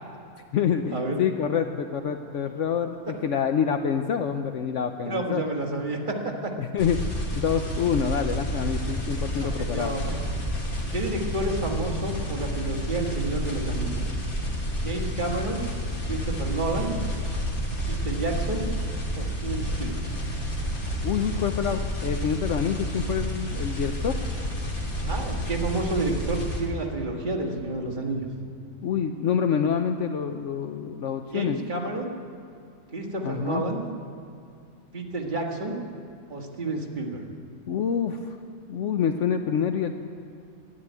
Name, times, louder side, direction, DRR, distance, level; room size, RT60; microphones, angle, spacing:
voice 1, 0.5-5.4 6.6-9.9 21.0-24.2 28.8-31.6 33.2-33.7 37.7-38.4 38.7-39.9, left 7 dB, 65° left, 7 dB, 0.9 m, -27 dB
voice 2, 5.0-6.5 9.4-10.2 10.9-14.0 14.8-15.7 16.1-17.0 17.9-18.7 19.2-20.0 25.0-28.3 31.3-32.1 32.9-33.9 34.9-35.8 36.3-37.2, right 2 dB, 35° right, 1 dB, 1.8 m, -30 dB
sound 1, 6.8-26.6, equal, 85° left, 2.8 m, -30 dB
12.5 x 10.5 x 9.3 m, 2.5 s
omnidirectional pair, 1.5 m